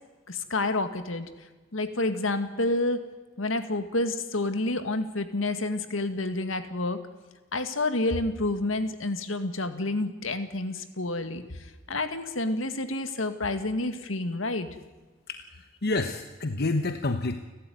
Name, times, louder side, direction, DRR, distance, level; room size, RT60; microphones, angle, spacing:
voice 1, 0.3-3.1 3.4-7.0 7.5-14.7, left 2 dB, 75° left, 9 dB, 2.0 m, -29 dB
voice 2, 15.3-17.3, left 2 dB, 55° left, 7 dB, 1.2 m, -29 dB
29.5 x 12.5 x 9.5 m, 1.2 s
head